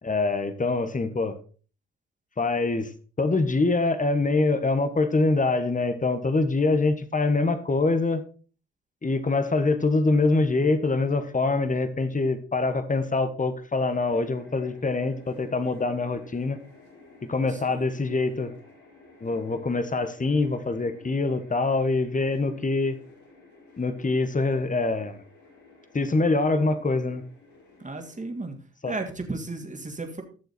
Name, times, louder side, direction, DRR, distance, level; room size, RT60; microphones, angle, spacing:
voice 1, 0.0-1.4 2.4-8.2 9.0-16.6 17.3-18.5 19.2-23.0 23.8-25.2 25.9-27.2 28.8-28.9, left 3 dB, 25° left, 10 dB, 1.5 m, -24 dB
sound 1, 13.8-28.2, left 3 dB, 65° left, 5.9 m, -53 dB
voice 2, 17.5-17.9 27.8-28.6 28.9-30.2, right 2 dB, 25° right, 4 dB, 2.8 m, -34 dB
14.0 x 6.8 x 4.4 m, 0.39 s
hypercardioid pair, 45°, 31 cm